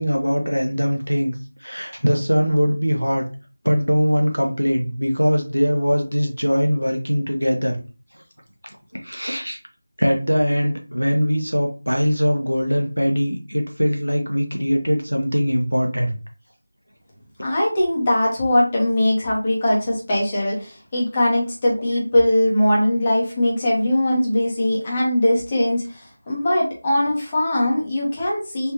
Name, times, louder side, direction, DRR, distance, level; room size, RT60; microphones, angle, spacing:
voice 1, 0.0-1.3 1.6-3.2 3.6-7.8 8.9-9.6 10.0-16.2, equal, 90° right, 2 dB, 1.2 m, -21 dB
voice 2, 17.4-28.7, left 1 dB, 20° left, -4 dB, 1.1 m, -20 dB
3.4 x 3.4 x 2.8 m, 0.34 s
figure-of-eight pair, 170°, 0 cm